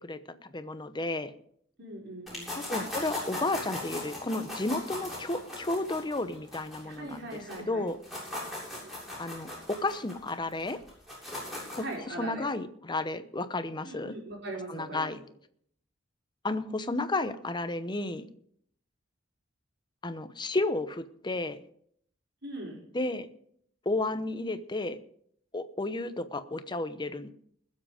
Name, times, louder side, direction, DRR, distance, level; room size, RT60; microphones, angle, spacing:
voice 1, 0.0-1.3 2.5-7.3 7.7-8.0 9.2-10.8 11.7-11.8 12.2-14.1 14.7-15.2 16.4-18.2 20.0-21.6 22.9-23.3 23.9-25.0 25.5-27.3, left 2 dB, 25° left, 11 dB, 0.9 m, -32 dB
voice 2, 1.8-2.5 6.8-7.9 11.8-12.5 13.8-15.1 22.4-22.9, right 2 dB, 65° right, -1 dB, 5.0 m, -40 dB
sound 1, 2.3-7.6 7.9-11.9, left 1 dB, ahead, 7.5 m, -38 dB
21.0 x 7.6 x 5.1 m, 0.66 s
head